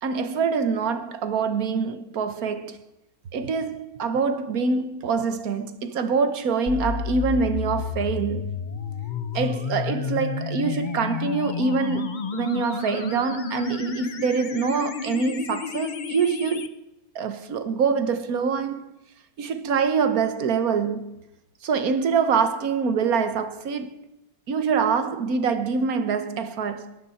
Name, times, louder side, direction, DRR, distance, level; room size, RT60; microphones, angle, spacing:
voice 1, 0.0-2.9 3.3-8.6 9.3-16.7 17.1-18.9 19.4-21.2 21.6-24.0 24.5-27.0, right 5 dB, 55° right, 1.4 m, -25 dB
sound 1, 6.7-16.7, left 5 dB, 85° left, 0.4 m, -31 dB
22.0 x 12.0 x 4.2 m
omnidirectional pair, 2.0 m